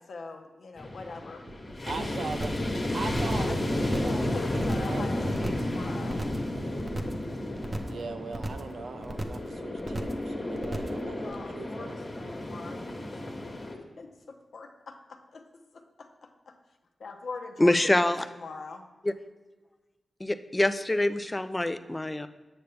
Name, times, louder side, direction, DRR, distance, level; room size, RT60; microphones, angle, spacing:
voice 1, 0.0-1.4 3.5-6.2 11.2-13.2 13.4-15.4 15.7-16.5 17.0-18.9, left 4 dB, 70° left, 4 dB, 0.8 m, -42 dB
sound 1, 0.8-13.7, left 1 dB, 40° left, 1.2 m, -32 dB
sound 2, 1.5-2.1 2.3-3.1 3.3-4.7 4.9-5.4 5.8-6.7, equal, 50° right, 1.0 m, -46 dB
voice 2, 1.9-5.6 7.9-12.0, right 4 dB, 80° right, 7 dB, 0.6 m, -40 dB
sound 3, 2.3-2.7 3.0-3.4 3.7-4.2 4.5-5.0 5.3-5.7 6.0-6.5 6.8-7.2 7.5-8.0 8.3-8.7 9.0-9.5 9.8-10.2 10.5-11.0 11.3-11.4, right 1 dB, 30° right, 0.7 m, -35 dB
voice 3, 17.6-18.3 19.0-19.1 20.2-22.3, left 1 dB, 15° left, 11 dB, 0.4 m, -25 dB
8.0 x 6.6 x 3.4 m, 1.2 s
wide cardioid pair, 80°, 0 cm